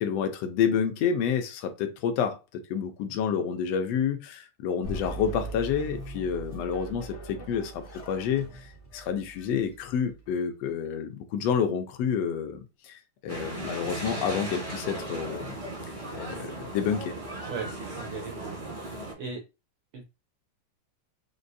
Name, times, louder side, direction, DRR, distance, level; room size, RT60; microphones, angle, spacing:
voice 1, 0.0-8.5 8.9-15.6 16.1-17.1, left 7 dB, 75° left, 1.6 m, -29 dB
sound 1, 4.8-10.3, right 3 dB, 55° left, 0.7 m, -41 dB
sound 2, 13.3-19.1, right 2 dB, 50° right, 0.5 m, -37 dB
voice 2, 17.5-19.4 19.9-20.0, right 4 dB, 85° right, 1.2 m, -39 dB
6.2 x 2.3 x 2.6 m
omnidirectional pair, 3.3 m